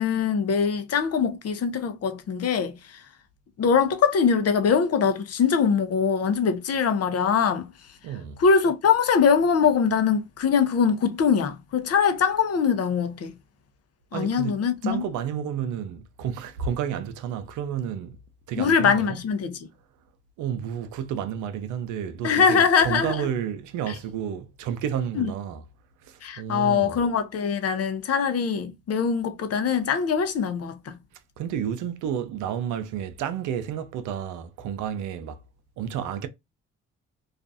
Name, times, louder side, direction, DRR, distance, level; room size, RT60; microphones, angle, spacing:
voice 1, 0.0-3.0 3.6-7.7 8.4-13.3 14.1-15.0 18.6-19.7 22.2-23.3 25.2-25.3 26.2-31.0, left 6 dB, 55° left, 0.7 m, -22 dB
voice 2, 8.0-8.4 14.1-18.2 18.5-19.2 20.4-25.6 26.0-27.0 31.4-35.4 35.8-36.3, right 9 dB, 80° right, 0.5 m, -31 dB
2.5 x 2.3 x 2.5 m
supercardioid pair, 55°, 30 cm